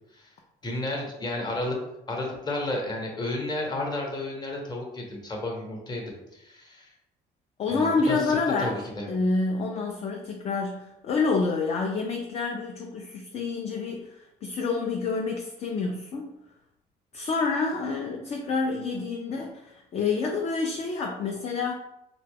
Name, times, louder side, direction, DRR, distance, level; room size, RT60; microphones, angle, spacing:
voice 1, 0.6-1.8 2.1-6.9 7.7-9.1, left 1 dB, 25° left, 0 dB, 0.9 m, -32 dB
voice 2, 7.6-8.8 9.1-16.3 17.1-21.7, left 4 dB, 40° left, 1 dB, 0.4 m, -28 dB
2.9 x 2.2 x 3.3 m, 0.88 s
cardioid pair, 110°, 17 cm